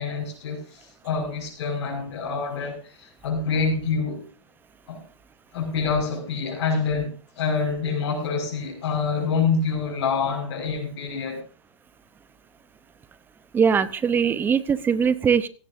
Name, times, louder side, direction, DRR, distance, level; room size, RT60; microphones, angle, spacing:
voice 1, 0.0-4.3 4.9-5.0 5.5-11.4, left 5 dB, 55° left, 5.9 m, -26 dB
voice 2, 13.5-15.5, right 6 dB, 10° right, 0.8 m, -21 dB
16.5 x 16.5 x 2.7 m
hypercardioid pair, 140°, 16 cm